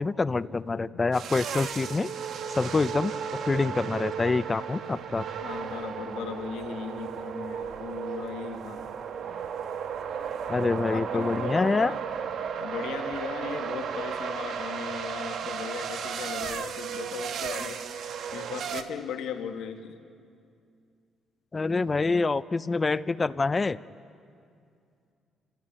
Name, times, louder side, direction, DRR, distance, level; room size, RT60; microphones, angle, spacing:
voice 1, 0.0-2.1 2.5-3.1 3.5-5.2 10.5-11.9 21.5-23.8, left 3 dB, 30° left, 17 dB, 0.5 m, -26 dB
voice 2, 0.7-1.1 5.4-8.9 9.2-9.5 10.9-12.0 12.6-17.9 18.3-20.0, left 7 dB, 85° left, 5 dB, 1.7 m, -37 dB
sound 1, 1.1-18.8, right 7 dB, 70° right, 1.2 m, -34 dB
29.0 x 14.5 x 8.8 m, 2.4 s
cardioid pair, 90°, 0 cm